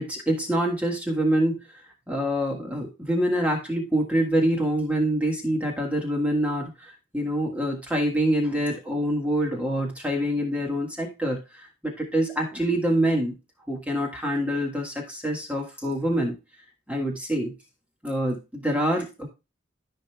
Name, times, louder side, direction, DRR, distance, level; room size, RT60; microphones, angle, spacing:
voice 1, 0.0-1.6 2.1-13.3 13.7-16.3 16.9-17.5 18.0-19.3, right 1 dB, 5° right, 0 dB, 1.6 m, -26 dB
14.0 x 5.3 x 2.3 m, 0.26 s
head